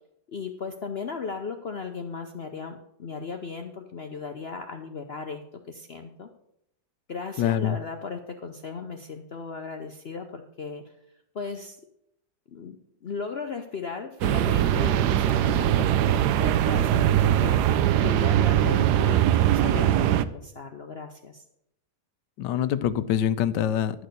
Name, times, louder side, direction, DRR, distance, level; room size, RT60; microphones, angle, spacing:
voice 1, 0.3-5.4 5.7-6.3 7.1-10.9 11.3-11.8 12.5-17.8 18.0-21.4, left 5 dB, 50° left, 5 dB, 0.7 m, -36 dB
voice 2, 7.4-7.8 22.4-24.1, left 10 dB, 90° left, 14 dB, 1.3 m, -25 dB
sound 1, 14.2-20.2, right 11 dB, 75° right, 1.1 m, -21 dB
11.5 x 6.5 x 6.8 m, 0.78 s
omnidirectional pair, 1.9 m